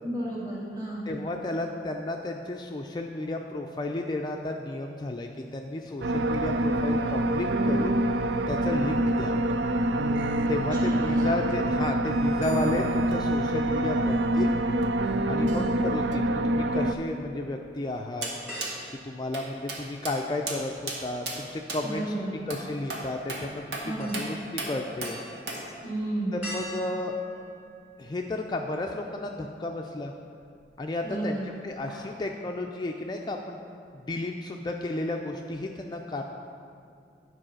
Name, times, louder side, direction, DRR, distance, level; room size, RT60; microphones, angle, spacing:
voice 1, 0.0-1.1 10.4-11.4 15.3-15.7 21.8-22.3 23.8-24.2 25.8-26.4 31.0-31.5, right 1 dB, 25° right, -5 dB, 2.2 m, -33 dB
voice 2, 1.1-8.0 8.5-9.4 10.5-14.5 15.3-18.3 19.0-22.1 22.5-24.4 24.7-25.2 26.5-27.3 28.0-30.1 30.8-33.6 33.9-36.2, left 2 dB, 25° left, 2 dB, 0.4 m, -33 dB
sound 1, 6.0-16.9, right 1 dB, 90° right, 0.4 m, -26 dB
sound 2, 18.2-18.3 18.6-18.7 19.3-19.4 19.7-19.8 20.1-20.2 20.5-20.6 20.9-21.0 21.3-21.4 21.7-21.8 22.5-22.6 22.9-23.0 23.3-23.4 23.7-23.9 24.1-24.3 24.6-24.7 25.0-25.1 25.5-25.6, right 3 dB, 70° right, 1.4 m, -33 dB
sound 3, 18.5-20.2 20.5-28.4 28.8-28.9 30.4-30.9 31.2-31.4 31.7-32.2 32.6-32.7, equal, 5° right, 1.9 m, -45 dB
10.0 x 4.7 x 6.3 m, 2.4 s
head